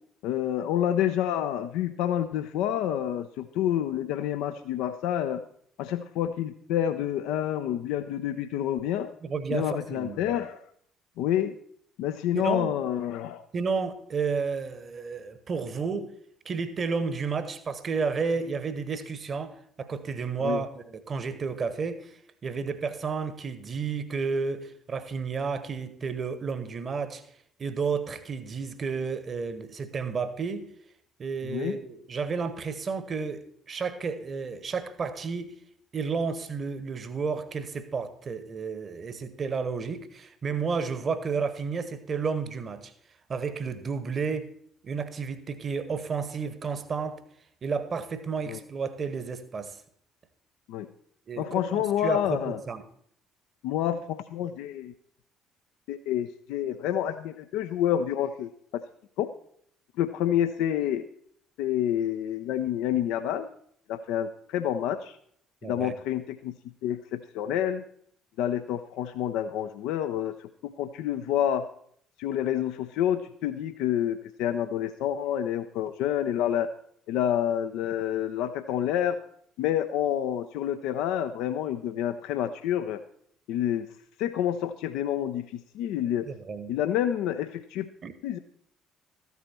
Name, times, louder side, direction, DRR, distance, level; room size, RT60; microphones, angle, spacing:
voice 1, 0.2-5.4 5.8-9.1 9.5-10.6 11.2-11.6 12.0-13.4 20.4-20.6 31.5-31.8 48.5-48.6 50.7-50.9 51.4-52.6 53.6-54.9 55.9-58.8 59.2-59.3 60.0-61.0 61.6-63.5 63.9-65.2 65.6-66.6 66.8-67.8 68.4-71.6 72.2-76.7 77.1-79.2 79.6-83.0 83.5-83.9 84.2-86.3 86.7-87.9 88.2-88.4, left 10 dB, 60° left, 0.5 m, -28 dB
voice 2, 9.2-10.4 12.3-12.8 13.5-16.1 16.4-27.2 27.6-30.6 31.2-35.5 35.9-42.9 43.3-44.5 44.8-47.2 47.6-49.8 51.3-52.8 65.6-66.0 86.3-86.7 88.0-88.1, right 5 dB, 40° right, 1.1 m, -32 dB
13.5 x 8.2 x 4.3 m
figure-of-eight pair, 50°, 0 cm